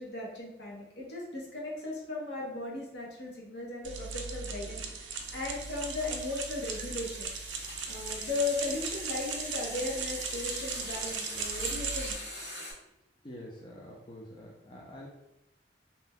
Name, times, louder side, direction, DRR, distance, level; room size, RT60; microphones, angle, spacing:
voice 1, 0.0-7.3 7.9-12.1, left 3 dB, 65° left, -3 dB, 0.9 m, -37 dB
sound 1, 3.8-12.1, right 5 dB, 90° right, 0.4 m, -38 dB
sound 2, 4.4-12.7, left 1 dB, 85° left, 1.4 m, -43 dB
voice 2, 13.2-15.1, left 1 dB, 25° left, -4 dB, 0.4 m, -46 dB
2.7 x 2.1 x 3.5 m, 0.86 s
head